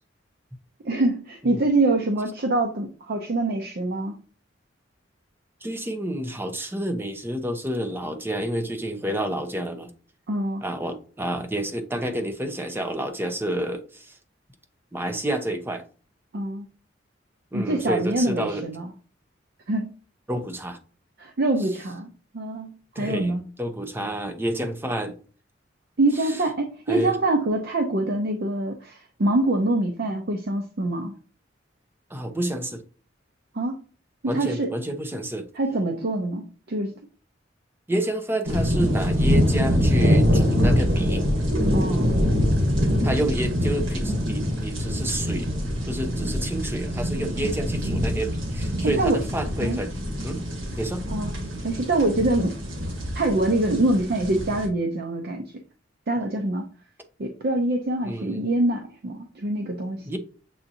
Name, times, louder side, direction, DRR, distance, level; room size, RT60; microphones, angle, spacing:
voice 1, 0.8-4.1 10.3-10.6 16.3-16.7 17.5-18.9 19.7-19.9 21.2-22.1 22.3-23.4 26.0-31.1 33.5-33.8 34.3-34.7 35.5-36.9 41.7-42.1 48.8-49.2 49.6-49.8 51.1-51.3 51.6-52.6 53.1-55.4 56.1-56.7 57.2-60.1, right 2 dB, 55° right, 0.5 m, -25 dB
voice 2, 5.6-9.9 10.6-14.1 14.9-15.8 17.5-18.6 20.3-20.8 22.9-23.3 23.6-25.2 26.2-26.4 26.9-27.1 32.1-32.8 34.3-35.5 37.9-41.2 43.0-45.5 45.9-50.0 50.2-50.4 50.8-51.0 58.0-58.4 60.1-60.2, right 1 dB, 10° right, 0.6 m, -29 dB
sound 1, 38.5-54.7, equal, 90° right, 1.3 m, -24 dB
7.1 x 2.6 x 2.7 m
head